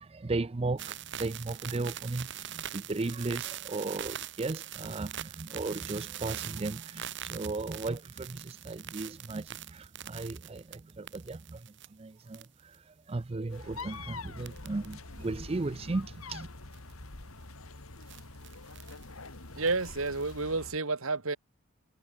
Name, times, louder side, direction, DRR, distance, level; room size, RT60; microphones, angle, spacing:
voice 1, 0.0-16.5, right 3 dB, 30° right, 0.5 m, -36 dB
sound 1, 0.8-11.9 12.3-12.7 13.7-13.9 14.4-14.9 15.2-15.3 16.7-16.9 18.0-19.0 19.7-20.4, right 11 dB, 55° right, 1.4 m, -42 dB
sound 2, 13.5-20.8, left 3 dB, 90° left, 2.4 m, -45 dB
voice 2, 19.5-21.4, right 3 dB, 80° right, 2.4 m, -30 dB
head